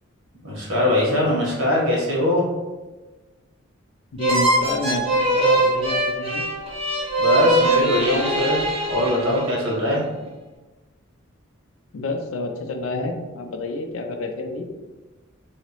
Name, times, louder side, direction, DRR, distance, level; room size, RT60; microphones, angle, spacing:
voice 1, 0.4-2.4 7.2-10.0, left 1 dB, 85° right, -4 dB, 1.3 m, -22 dB
voice 2, 4.1-6.5 11.9-14.6, left 2 dB, 75° left, 5 dB, 0.5 m, -29 dB
sound 1, 4.2-9.7, right 1 dB, 30° right, 0.7 m, -21 dB
3.0 x 2.8 x 3.0 m, 1.2 s
head